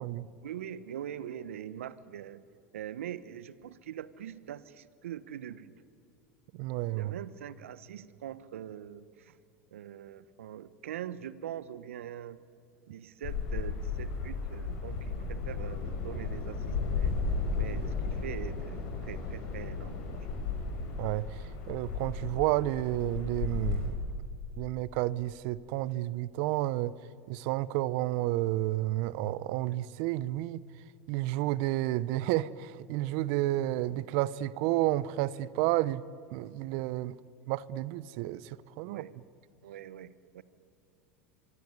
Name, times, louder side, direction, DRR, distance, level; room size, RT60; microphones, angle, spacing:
voice 1, 0.4-2.4 2.7-5.7 6.9-9.3 9.7-12.4 12.9-17.2 17.6-20.3 38.8-39.1 39.6-40.4, right 10 dB, 80° right, 1.1 m, -43 dB
voice 2, 6.5-7.2 21.0-24.0 24.6-26.9 27.3-30.6 31.1-36.0 36.3-37.1 37.5-39.0, right 16 dB, 60° right, 0.8 m, -31 dB
sound 1, 13.2-23.9, left 4 dB, 60° left, 6.7 m, -34 dB
24.5 x 24.5 x 9.7 m
hypercardioid pair, 90°, 7 cm